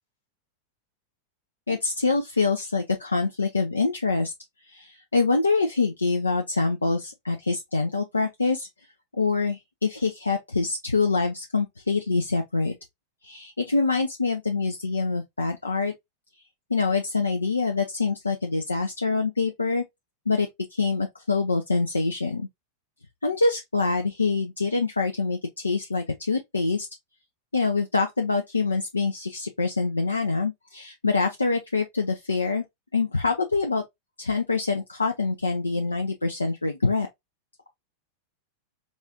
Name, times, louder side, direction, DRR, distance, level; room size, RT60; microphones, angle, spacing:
voice 1, 1.7-4.3 4.7-8.7 9.1-12.7 13.2-15.9 16.7-19.8 20.3-22.5 23.2-26.9 27.5-32.6 32.9-33.8 34.2-37.1, left 4 dB, 80° left, 0.4 m, -25 dB
4.1 x 2.4 x 2.6 m
figure-of-eight pair, 90°, 0 cm